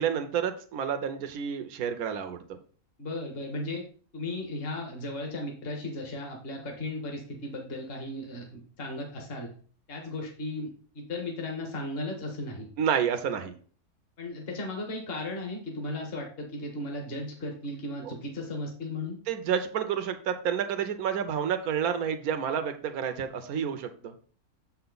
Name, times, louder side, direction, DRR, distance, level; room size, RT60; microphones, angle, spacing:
voice 1, 0.0-2.6 12.8-13.5 18.0-18.1 19.3-24.1, right 8 dB, 75° right, 7 dB, 1.3 m, -29 dB
voice 2, 3.0-3.9 4.1-9.5 9.9-12.7 14.2-19.2, left 2 dB, 40° left, 1 dB, 1.6 m, -36 dB
7.4 x 5.7 x 4.0 m, 0.42 s
omnidirectional pair, 1.6 m